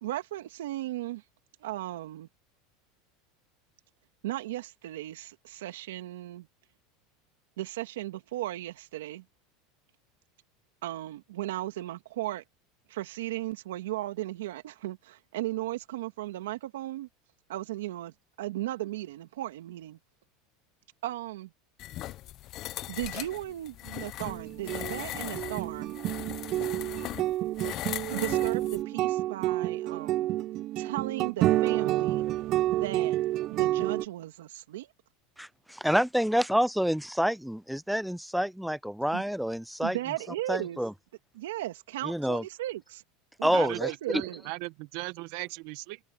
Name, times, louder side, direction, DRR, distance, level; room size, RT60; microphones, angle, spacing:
voice 1, 0.0-1.2 1.6-2.3 4.2-6.5 7.6-9.2 10.8-12.4 12.9-17.1 17.5-20.0 21.0-21.5 22.9-26.0 28.1-30.3 30.8-32.2 32.7-33.2 33.5-34.9 39.1-39.2 39.8-40.8 41.3-43.0 43.4-44.4, right 15 dB, 85° right, 2.4 m, -36 dB
sound 1, 21.8-28.8, left 15 dB, 45° left, 0.9 m, -39 dB
sound 2, 24.2-34.0, right 15 dB, 45° right, 0.7 m, -29 dB
voice 2, 35.4-40.0 40.5-40.9 42.0-42.4 43.4-43.9, equal, ahead, 0.4 m, -28 dB
voice 3, 44.1-46.0, right 23 dB, 65° right, 1.8 m, -37 dB
supercardioid pair, 120°, 0 cm